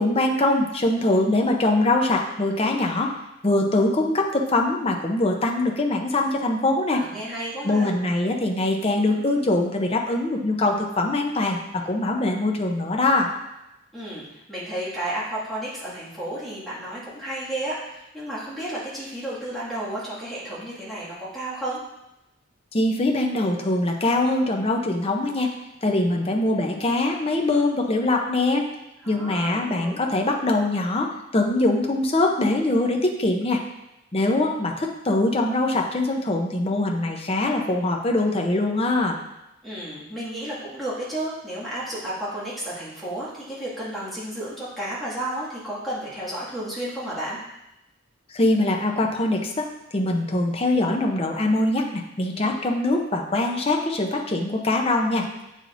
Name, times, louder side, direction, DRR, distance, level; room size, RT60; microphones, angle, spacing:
voice 1, 0.0-3.1 3.4-7.0 7.6-11.6 11.8-13.3 22.7-25.5 25.8-28.7 29.1-33.6 34.1-39.2 48.3-49.7 49.9-55.3, left 2 dB, 30° left, 1 dB, 0.6 m, -23 dB
voice 2, 6.9-7.9 13.9-21.8 29.0-30.0 39.6-47.4, right 1 dB, ahead, -9 dB, 2.0 m, -32 dB
8.0 x 4.9 x 2.6 m, 0.91 s
head